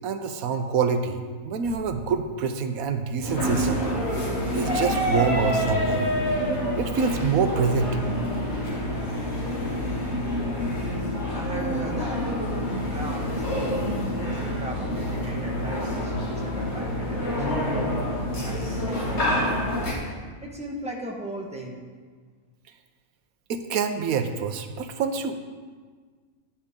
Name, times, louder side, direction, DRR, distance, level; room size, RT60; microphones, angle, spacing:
voice 1, 0.0-3.8 4.5-6.1 6.8-8.0 23.5-25.3, right 5 dB, 90° right, 7 dB, 1.2 m, -26 dB
sound 1, 3.2-19.9, left 1 dB, 90° left, 3.1 m, -28 dB
sound 2, 4.6-10.2, equal, 15° left, 1.7 m, -30 dB
voice 2, 11.3-12.2 12.9-13.9 14.2-17.9 18.4-19.3 19.7-21.8, right 1 dB, 5° right, -2 dB, 1.4 m, -38 dB
11.5 x 9.7 x 3.7 m, 1.5 s
omnidirectional pair, 1.5 m